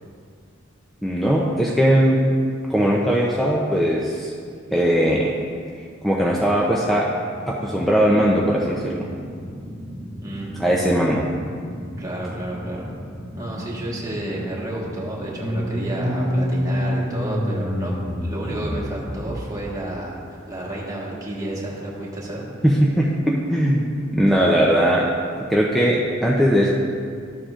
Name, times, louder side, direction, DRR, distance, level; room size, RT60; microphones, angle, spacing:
voice 1, 1.0-2.2 2.7-4.3 4.7-5.3 6.0-7.1 7.5-9.1 10.5-11.2 22.6-23.9 24.1-25.1 25.5-26.7, equal, ahead, -4 dB, 0.5 m, -19 dB
sound 1, 6.7-17.6, equal, 20° left, 1.3 m, -37 dB
voice 2, 10.2-10.5 12.0-12.9 13.4-22.5, right 1 dB, 20° right, -5 dB, 1.5 m, -31 dB
sound 2, 15.4-19.7, equal, 35° left, 1.4 m, -26 dB
13.0 x 7.6 x 2.5 m, 2.3 s
head